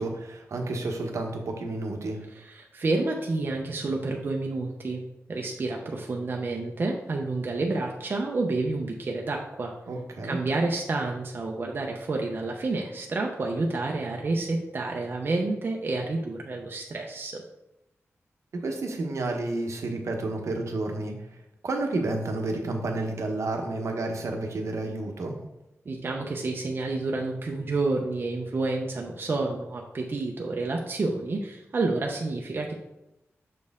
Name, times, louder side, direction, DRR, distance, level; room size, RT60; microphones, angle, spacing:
voice 1, 0.0-2.2 9.9-10.4 18.5-21.1 21.6-25.3, right 2 dB, 80° right, 3 dB, 0.9 m, -30 dB
voice 2, 2.3-5.0 5.3-9.7 10.2-17.4 25.9-32.7, right 3 dB, 45° right, 1 dB, 0.6 m, -29 dB
6.3 x 4.3 x 3.5 m, 0.90 s
wide cardioid pair, 160°, 5 cm